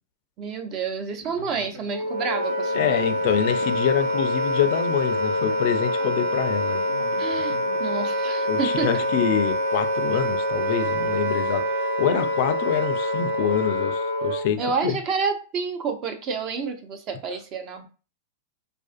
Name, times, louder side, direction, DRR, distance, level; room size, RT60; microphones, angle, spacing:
voice 1, 0.4-3.0 7.2-9.0 14.6-17.9, right 5 dB, 40° right, 0.5 m, -29 dB
sound 1, 1.2-9.8, right 1 dB, 65° right, 1.0 m, -44 dB
Wind instrument woodwind instrument, 1.9-14.5, left 1 dB, 85° right, 0.9 m, -25 dB
voice 2, 2.7-6.8 8.5-11.6 12.0-15.0, left 9 dB, 55° left, 0.3 m, -25 dB
2.4 x 2.4 x 2.4 m
hypercardioid pair, 125°, 0 cm